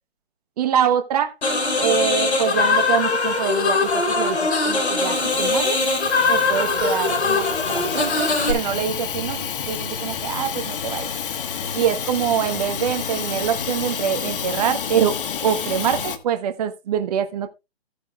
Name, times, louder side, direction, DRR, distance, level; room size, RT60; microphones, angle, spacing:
voice 1, 0.6-1.3 1.8-4.4 4.6-5.8 6.3-11.1 11.7-17.5, right 8 dB, 35° right, 1.0 m, -24 dB
sound 1, 1.4-8.5, left 3 dB, 85° left, 3.4 m, -21 dB
Hiss / Toilet flush / Trickle dribble, 1.5-16.2, left 7 dB, 55° left, 1.4 m, -31 dB
14.5 x 9.1 x 2.3 m
hypercardioid pair, 145°, 32 cm